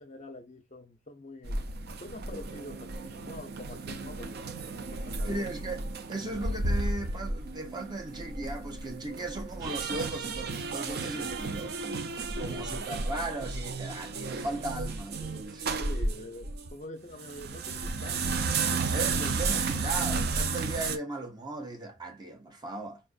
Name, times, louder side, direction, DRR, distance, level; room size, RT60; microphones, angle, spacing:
voice 1, 0.0-1.6 2.0-4.4 4.7-5.4 12.4-12.9 15.8-18.4 18.7-18.9, left 1 dB, 35° left, 0.6 m, -45 dB
sound 1, 1.4-16.7 17.1-21.0, right 3 dB, 50° right, 0.5 m, -33 dB
voice 2, 5.2-5.8 6.1-11.8 12.4-15.7 18.9-23.0, right 2 dB, 20° right, 0.8 m, -37 dB
4.5 x 2.5 x 2.4 m
head